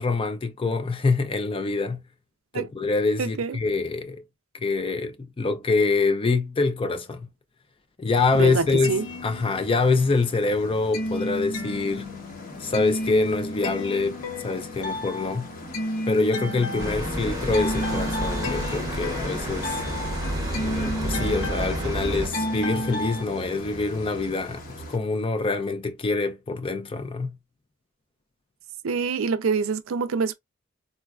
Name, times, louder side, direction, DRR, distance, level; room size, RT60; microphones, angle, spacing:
voice 1, 0.0-2.0 2.5-4.2 4.6-7.3 8.0-12.1 12.6-14.2 14.4-15.5 16.1-19.8 20.6-24.6 24.9-27.4, left 3 dB, 25° left, 0.4 m, -25 dB
voice 2, 3.2-3.6 8.3-9.0 28.8-30.3, right 5 dB, 70° right, 0.4 m, -26 dB
sound 1, 8.1-25.0, left 1 dB, 45° left, 0.9 m, -38 dB
sound 2, 8.8-10.1 10.4-23.2, left 1 dB, 80° left, 1.0 m, -32 dB
sound 3, 16.8-22.3, right 1 dB, 15° right, 0.7 m, -31 dB
3.8 x 2.3 x 2.2 m
head